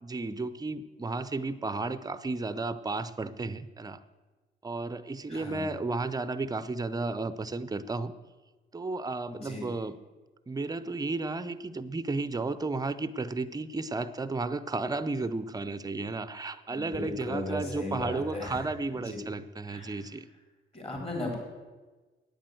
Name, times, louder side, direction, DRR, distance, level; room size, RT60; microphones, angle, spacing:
voice 1, 0.0-4.0 4.6-8.1 8.7-9.9 10.5-20.3, right 3 dB, 20° right, 14 dB, 0.6 m, -33 dB
voice 2, 5.3-5.6 9.3-9.7 16.7-18.7 18.9-19.2 19.7-20.0 20.7-21.4, left 1 dB, 30° left, 0 dB, 3.9 m, -36 dB
9.4 x 8.9 x 7.7 m, 1.3 s
cardioid pair, 90°, 20 cm